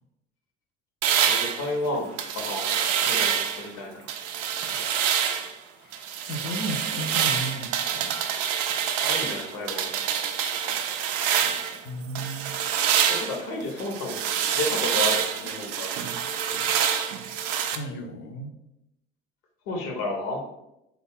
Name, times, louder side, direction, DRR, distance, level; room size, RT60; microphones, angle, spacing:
sound 1, 1.0-3.7 4.1-5.5 5.9-11.8 12.2-17.8, right 8 dB, 40° right, 0.4 m, -26 dB
voice 1, 1.3-2.7 3.0-4.1 9.0-9.9 13.1-14.2 14.5-15.9 19.7-20.4, left 2 dB, 55° left, 1 dB, 0.9 m, -31 dB
voice 2, 5.8-8.2 11.8-12.6 17.7-18.6, equal, 30° left, 4 dB, 0.6 m, -34 dB
3.8 x 2.3 x 3.6 m, 0.87 s
figure-of-eight pair, 65°, 36 cm